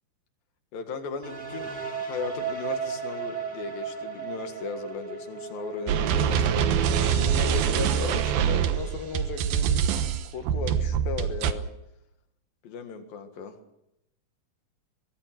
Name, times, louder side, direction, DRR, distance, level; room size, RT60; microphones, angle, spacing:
voice 1, 0.7-9.8 10.3-11.6 12.6-13.6, left 5 dB, 75° left, 7 dB, 3.6 m, -36 dB
sound 1, 1.2-9.0, right 4 dB, 15° right, 2.7 m, -36 dB
sound 2, 5.9-11.5, right 8 dB, 80° right, 2.9 m, -24 dB
23.5 x 21.0 x 6.1 m, 0.84 s
omnidirectional pair, 4.2 m